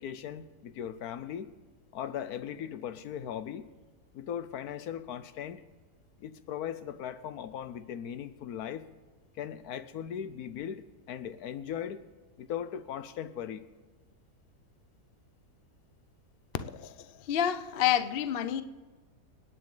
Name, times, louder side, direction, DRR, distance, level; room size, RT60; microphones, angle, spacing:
voice 1, 0.0-1.5 1.9-3.7 4.1-5.6 6.2-8.9 9.3-12.1 12.4-13.7, left 9 dB, 70° left, 12 dB, 1.2 m, -38 dB
voice 2, 16.7-18.6, left 10 dB, 55° left, 10 dB, 0.6 m, -29 dB
26.5 x 9.8 x 3.9 m, 1.3 s
omnidirectional pair, 1.7 m